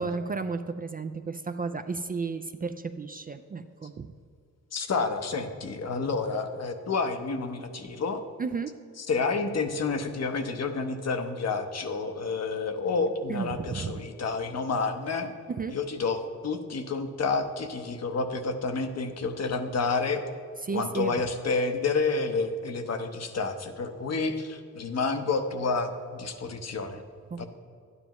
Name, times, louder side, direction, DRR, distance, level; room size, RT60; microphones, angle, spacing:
voice 1, 0.0-4.1 8.4-8.7 13.3-14.0 15.5-15.8 20.6-21.1 27.3-27.5, right 4 dB, 30° right, 9 dB, 0.3 m, -33 dB
voice 2, 4.7-8.2 9.0-15.3 15.7-20.2 20.7-27.0 27.4-27.5, left 4 dB, 55° left, 6 dB, 0.8 m, -29 dB
12.0 x 9.5 x 3.0 m, 2.3 s
cardioid pair, 95°, 31 cm